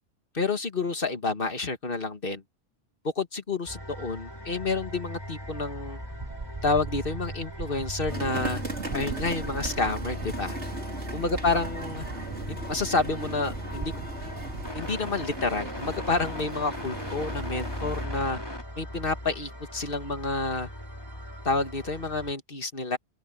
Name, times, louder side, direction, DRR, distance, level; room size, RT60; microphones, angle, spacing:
voice 1, 0.3-2.4 3.2-6.0 6.6-8.6 8.9-10.6 11.1-12.1 12.5-14.1 14.7-18.4 18.8-20.7 21.4-23.0, left 3 dB, 50° left, 2.0 m, -29 dB
sound 1, 3.7-22.3, equal, 20° left, 3.4 m, -38 dB
sound 2, 6.0-14.7, right 4 dB, 40° right, 1.3 m, -40 dB
sound 3, 8.1-18.1, right 2 dB, 75° right, 5.5 m, -38 dB
open air
omnidirectional pair, 1.2 m